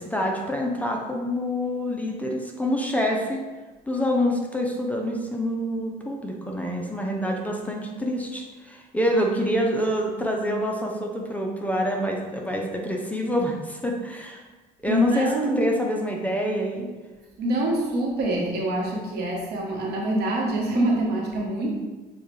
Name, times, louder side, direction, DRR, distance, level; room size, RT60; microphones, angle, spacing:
voice 1, 0.0-3.4 3.9-14.4 14.8-15.3 15.6-16.9, equal, 10° left, 0 dB, 0.6 m, -26 dB
voice 2, 14.9-15.7 17.4-21.7, right 1 dB, 75° right, -2 dB, 1.1 m, -25 dB
6.8 x 2.4 x 3.2 m, 1.2 s
cardioid pair, 110°, 17 cm